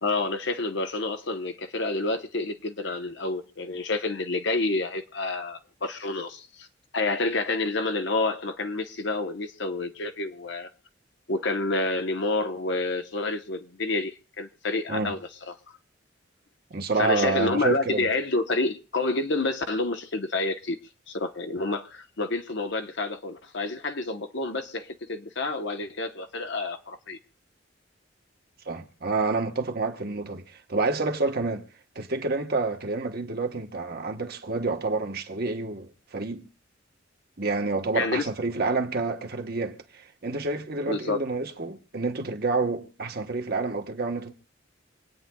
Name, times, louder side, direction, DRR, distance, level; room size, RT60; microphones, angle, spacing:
voice 1, 0.0-6.7 6.9-10.7 11.3-15.2 15.5-15.6 17.0-20.8 21.1-27.2 37.9-38.2 40.9-41.2, left 2 dB, 65° left, 1.0 m, -29 dB
voice 2, 16.7-18.1 28.6-31.7 31.9-36.5 37.4-44.3, right 3 dB, 55° right, 1.1 m, -28 dB
26.5 x 9.0 x 2.3 m
head